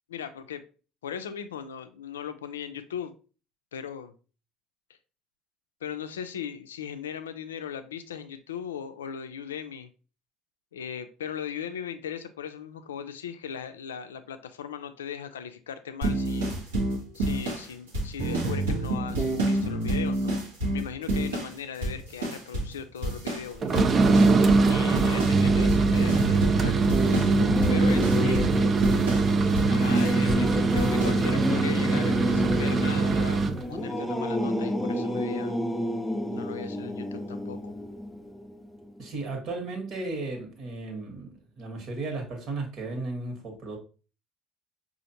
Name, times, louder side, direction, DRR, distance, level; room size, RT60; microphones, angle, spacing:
voice 1, 0.1-0.6 1.0-3.1 3.7-4.1 5.8-9.9 10.7-16.5 17.1-20.4 20.7-23.9 24.6-26.8 27.7-28.4 29.7-33.4 33.7-35.6 36.3-37.7, left 8 dB, 90° left, 0.3 m, -38 dB
sound 1, 16.0-21.6 21.8-22.8 23.0-30.5 30.8-31.2, right 1 dB, 90° right, 1.0 m, -28 dB
sound 2, 23.6-33.6, right 4 dB, 40° right, 0.4 m, -23 dB
Singing / Musical instrument, 27.4-39.2, left 1 dB, 10° left, 0.5 m, -30 dB
voice 2, 28.1-28.6 39.0-43.8, right 3 dB, 55° right, 1.3 m, -34 dB
5.1 x 2.5 x 2.8 m
hypercardioid pair, 65°, 0 cm